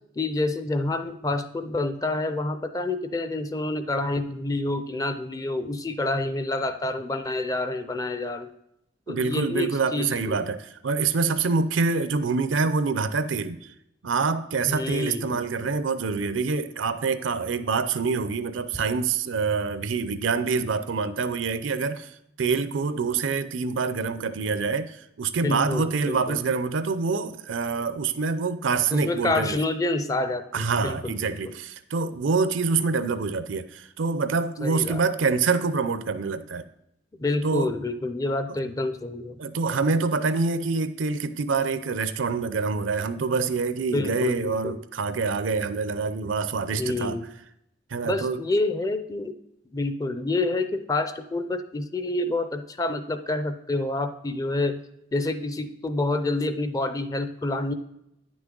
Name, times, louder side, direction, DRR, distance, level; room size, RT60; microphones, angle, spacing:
voice 1, 0.2-8.6 9.1-10.4 14.6-15.4 25.4-26.4 28.9-31.6 34.6-35.0 37.2-39.4 43.9-44.8 46.7-47.3 48.0-49.3 49.7-54.8 55.1-57.7, left 2 dB, 20° left, 0.4 m, -28 dB
voice 2, 9.1-13.7 14.0-29.6 30.5-36.6 37.4-37.7 39.4-47.2 47.9-48.4, right 4 dB, 80° right, 0.5 m, -26 dB
9.8 x 6.2 x 3.8 m
head